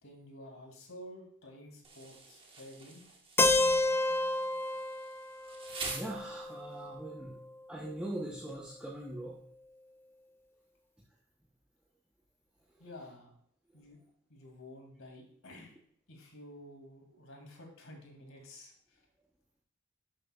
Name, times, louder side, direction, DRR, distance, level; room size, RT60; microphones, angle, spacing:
voice 1, 0.0-3.0 12.8-13.3 13.7-14.0 14.3-15.8 16.1-19.1, left 1 dB, 65° left, 1 dB, 2.4 m, -51 dB
Insect, 1.8-6.8, right 3 dB, 25° right, 1.3 m, -46 dB
Keyboard (musical), 3.4-7.3, left 2 dB, 10° left, 0.3 m, -30 dB
voice 2, 5.8-7.4 7.7-9.4, right 1 dB, 5° right, -4 dB, 0.8 m, -41 dB
11.0 x 7.2 x 2.3 m, 0.66 s
head